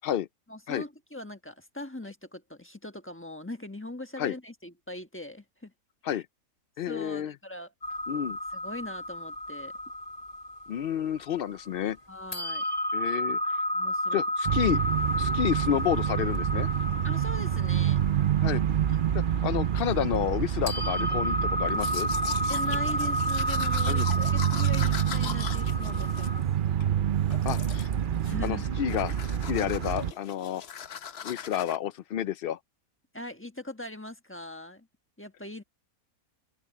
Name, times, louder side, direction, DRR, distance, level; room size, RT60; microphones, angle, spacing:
voice 1, 0.5-5.7 6.1-6.2 6.9-7.7 8.3-9.7 12.1-12.6 13.7-14.2 17.0-18.0 22.5-26.5 28.2-28.8 33.1-34.9 35.2-35.6, left 1 dB, 10° left, 1.2 m, -41 dB
voice 2, 6.8-7.3 8.1-8.4 10.7-12.0 12.9-13.6 14.1-14.8 15.2-16.7 18.4-18.6 19.1-22.1 23.9-24.1 27.4-27.9 28.4-29.2 29.5-30.6 31.2-32.6, left 10 dB, 80° left, 0.5 m, -30 dB
sound 1, 7.8-11.9 12.3-20.4 20.7-26.4, equal, 25° left, 2.2 m, -32 dB
sound 2, 14.5-30.1, right 10 dB, 55° right, 0.5 m, -28 dB
Domestic sounds home sounds, 21.7-26.9 27.3-27.9 28.2-28.6 28.9-31.8, left 8 dB, 50° left, 0.9 m, -40 dB
open air
omnidirectional pair, 1.5 m